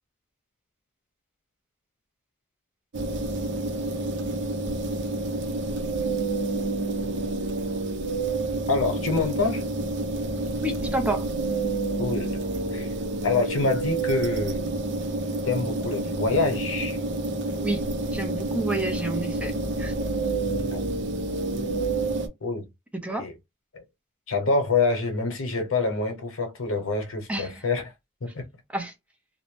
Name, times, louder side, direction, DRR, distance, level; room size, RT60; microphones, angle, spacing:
sound 1, 2.9-22.3, right 2 dB, 60° right, 0.5 m, -29 dB
voice 1, 8.7-9.6 12.0-12.4 12.7-12.9 13.2-14.8 15.4-17.0 20.7-20.8 22.4-22.7 23.2-23.3 23.7-23.8 24.3-27.9 28.2-28.5, left 3 dB, 90° left, 0.8 m, -26 dB
voice 2, 10.6-11.3 17.6-19.9 22.9-23.3 27.3-27.6 28.7-28.9, right 2 dB, 5° right, 0.5 m, -30 dB
2.6 x 2.1 x 3.0 m
head